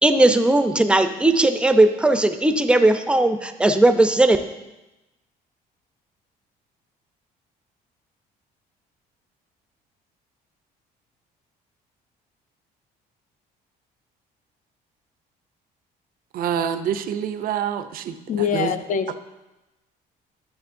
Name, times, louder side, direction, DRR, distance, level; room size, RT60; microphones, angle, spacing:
voice 1, 0.0-4.4, right 2 dB, 5° right, 8 dB, 0.5 m, -17 dB
voice 2, 16.3-18.2 18.5-18.7, right 8 dB, 60° right, 10 dB, 0.5 m, -26 dB
voice 3, 18.3-19.2, left 8 dB, 50° left, 10 dB, 0.6 m, -24 dB
10.5 x 7.4 x 2.6 m, 1.0 s
cardioid pair, 110°, 17 cm